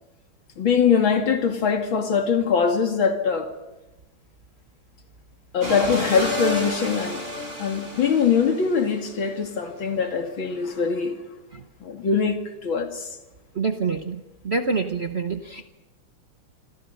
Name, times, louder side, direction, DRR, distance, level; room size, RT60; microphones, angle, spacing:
voice 1, 0.6-3.5 5.5-7.2 7.6-11.2 11.8-13.1, left 6 dB, 65° left, 5 dB, 3.0 m, -22 dB
sound 1, 5.6-9.1, left 1 dB, 25° right, 5.5 m, -31 dB
voice 2, 13.5-15.7, right 4 dB, 40° right, 6 dB, 1.0 m, -27 dB
27.5 x 25.5 x 5.6 m, 1.0 s
omnidirectional pair, 2.3 m